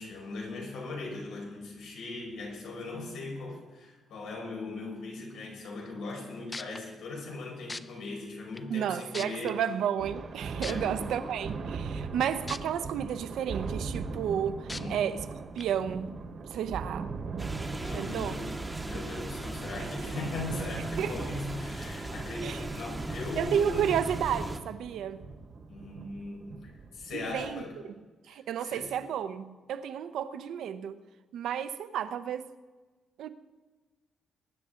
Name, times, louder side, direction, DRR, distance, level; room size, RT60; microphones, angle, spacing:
voice 1, 0.0-9.6 10.7-11.0 14.8-15.1 17.7-18.5 18.8-23.9 25.7-27.8 28.6-29.0, left 3 dB, 90° left, 5.0 m, -39 dB
sound 1, 6.2-6.3 6.5-6.8 7.7-7.8 8.6-8.7 9.1-9.5 10.6-10.7 12.5-12.6 13.1-13.2 14.7-14.8 15.6-15.7, left 3 dB, 15° left, 0.4 m, -37 dB
voice 2, 8.7-15.2 15.5-16.1 16.5-17.1 17.9-18.4 19.8-19.9 21.0-21.2 22.4-22.6 23.4-25.3 27.1-28.0 28.3-31.0 31.3-32.5 33.2-33.3, right 9 dB, 85° right, 0.8 m, -32 dB
Thunder, 10.0-27.7, right 4 dB, 45° right, 1.1 m, -40 dB
sound 2, 17.4-24.6, right 2 dB, 10° right, 0.9 m, -38 dB
22.5 x 11.0 x 3.8 m
cardioid pair, 165°, 0 cm